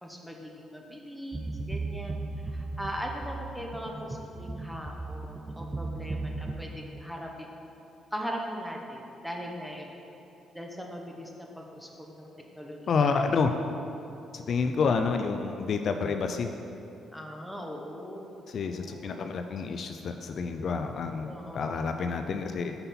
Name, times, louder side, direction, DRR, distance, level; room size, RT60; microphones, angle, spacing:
voice 1, 0.0-2.2 2.5-7.5 8.1-9.9 10.5-12.3 12.5-13.2 17.1-18.3 18.5-19.2 21.2-21.8, equal, ahead, 0 dB, 0.8 m, -40 dB
sound 1, 1.3-6.6, right 3 dB, 20° right, 0.4 m, -36 dB
voice 2, 12.9-13.6 14.3-16.5 18.5-22.8, left 5 dB, 55° left, 6 dB, 0.3 m, -29 dB
5.6 x 5.5 x 4.2 m, 2.8 s
cardioid pair, 90°, 0 cm